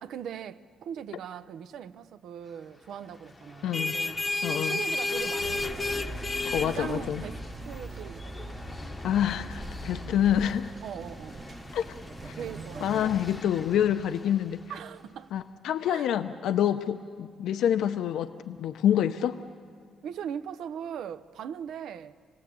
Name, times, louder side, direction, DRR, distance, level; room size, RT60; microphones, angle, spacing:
voice 1, 0.0-6.2 6.6-9.0 10.8-11.5 12.3-13.2 14.7-15.3 15.8-16.1 20.0-22.2, right 8 dB, 75° right, 0.8 m, -40 dB
sound 1, 3.5-14.8, left 3 dB, 20° left, 0.9 m, -35 dB
voice 2, 3.6-3.9 4.4-4.8 6.5-7.2 9.0-10.7 11.7-12.0 12.2-12.4 12.8-14.6 15.3-19.4, left 10 dB, 85° left, 0.7 m, -27 dB
sound 2, 5.4-13.4, right 2 dB, 35° right, 1.1 m, -41 dB
28.5 x 19.0 x 8.5 m
cardioid pair, 135°, 0 cm